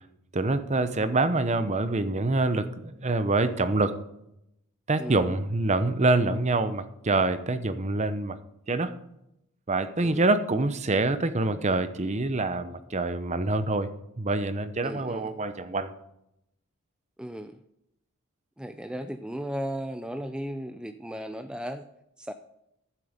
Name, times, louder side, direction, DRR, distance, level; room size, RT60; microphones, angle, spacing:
voice 1, 0.3-3.9 4.9-8.4 8.7-9.0 9.7-13.9 14.2-15.9, right 2 dB, 35° right, 11 dB, 0.8 m, -26 dB
voice 2, 14.8-15.3 17.2-17.6 18.6-21.8 22.2-22.3, equal, 5° right, 7 dB, 0.4 m, -35 dB
13.5 x 7.6 x 5.1 m, 0.80 s
head